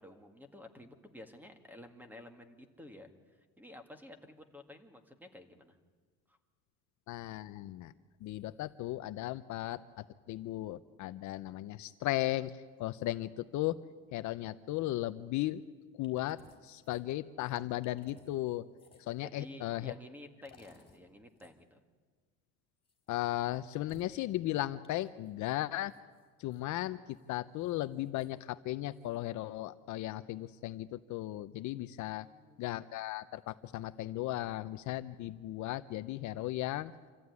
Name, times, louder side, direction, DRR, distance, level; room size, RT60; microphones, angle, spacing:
voice 1, 0.0-5.8 6.3-6.4 19.2-21.8 32.1-32.7, left 1 dB, 5° right, 7 dB, 1.9 m, -52 dB
voice 2, 7.1-7.9 8.2-13.8 14.1-15.6 15.9-18.7 19.0-19.9 23.1-25.9 26.4-32.3 32.6-36.9, left 15 dB, 50° left, 11 dB, 0.7 m, -36 dB
sound 1, 16.0-16.6 16.8-19.2 20.4-21.0 21.3-21.5 22.8-23.3 23.8-24.1 24.8-25.3 25.9-26.6 27.1-27.3 27.6-28.3 28.9-29.3, left 4 dB, 15° left, 4.3 m, -63 dB
26.5 x 14.5 x 9.5 m, 1.5 s
cardioid pair, 135°, 37 cm